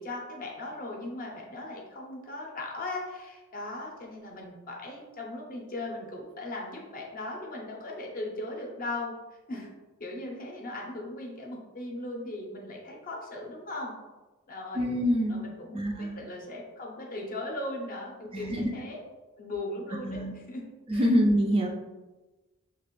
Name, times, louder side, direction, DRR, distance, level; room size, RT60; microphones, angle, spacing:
voice 1, 0.0-9.1 9.5-9.7 10.0-13.9 14.5-14.9 15.3-19.0 19.4-20.6 20.9-21.1, left 2 dB, 40° left, -1 dB, 0.6 m, -38 dB
voice 2, 14.7-15.4 15.7-16.2 18.3-18.7 20.0-20.3 20.9-21.7, equal, 25° right, 1 dB, 0.3 m, -25 dB
3.0 x 2.4 x 3.0 m, 1.1 s
head